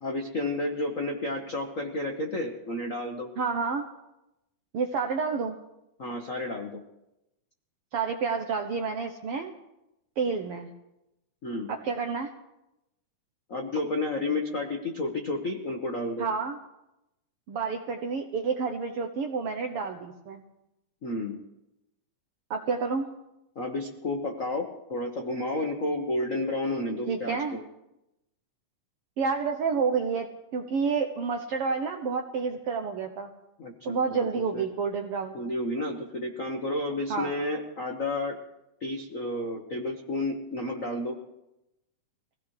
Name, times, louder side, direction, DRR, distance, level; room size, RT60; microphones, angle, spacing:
voice 1, 0.0-3.3 6.0-6.8 11.4-11.7 13.5-16.3 21.0-21.4 23.5-27.6 33.6-34.3 34.5-34.6 35.3-38.3 38.8-41.2, left 2 dB, 75° left, 2 dB, 0.7 m, -31 dB
voice 2, 3.4-3.8 4.7-5.6 7.9-9.5 10.2-10.7 11.7-12.3 16.2-16.6 17.5-20.4 22.5-23.1 27.1-27.6 29.2-33.3 33.8-35.4 37.1-37.3, right 5 dB, 75° right, 4 dB, 1.3 m, -29 dB
23.5 x 17.0 x 3.3 m, 0.90 s
omnidirectional pair, 3.6 m